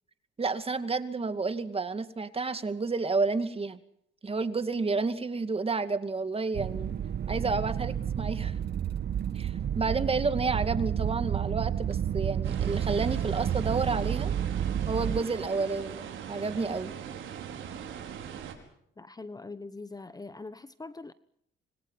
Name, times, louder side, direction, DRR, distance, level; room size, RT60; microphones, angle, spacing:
voice 1, 0.4-3.8 4.2-7.0 7.3-8.5 9.3-14.3 14.9-16.9, right 4 dB, 30° right, 2.3 m, -30 dB
sound 1, 6.5-15.2, right 9 dB, 55° right, 1.1 m, -30 dB
sound 2, 12.4-18.5, right 8 dB, 80° right, 5.4 m, -41 dB
voice 2, 19.0-21.1, left 3 dB, 20° left, 1.1 m, -42 dB
27.5 x 26.0 x 5.7 m
cardioid pair, 90°, 20 cm